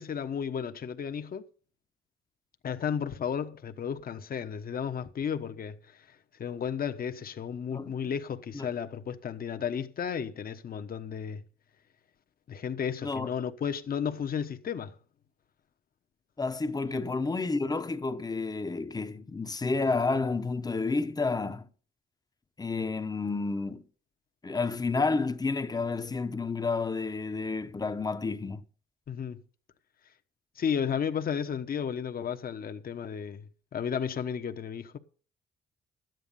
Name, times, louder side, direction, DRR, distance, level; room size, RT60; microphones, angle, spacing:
voice 1, 0.0-1.5 2.6-6.1 6.4-11.4 12.5-14.9 29.1-29.4 30.6-35.0, left 7 dB, 45° left, 1.0 m, -33 dB
voice 2, 16.4-21.7 22.6-23.8 24.4-28.6, left 3 dB, 20° left, 0.9 m, -30 dB
12.5 x 9.1 x 5.4 m
cardioid pair, 90°, 20 cm